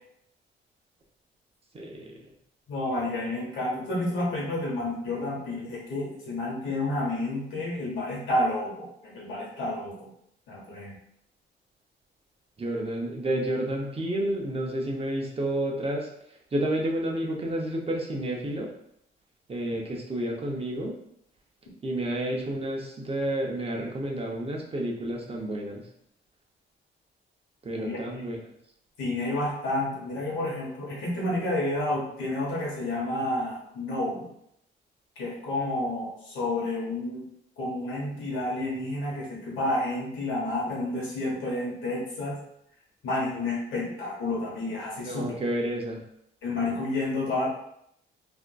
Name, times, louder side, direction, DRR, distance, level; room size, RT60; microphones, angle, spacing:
voice 1, 1.7-2.2 12.6-16.1 16.5-18.7 19.5-21.0 21.8-25.8 27.6-28.4 45.1-46.0, right 1 dB, 30° right, 0 dB, 0.6 m, -30 dB
voice 2, 2.7-10.1 10.5-10.9 27.8-28.2 29.0-34.3 35.2-37.2 37.6-42.4 43.0-45.3 46.4-47.5, left 1 dB, 85° left, -4 dB, 1.1 m, -30 dB
3.5 x 2.5 x 2.3 m, 0.75 s
cardioid pair, 90°, 20 cm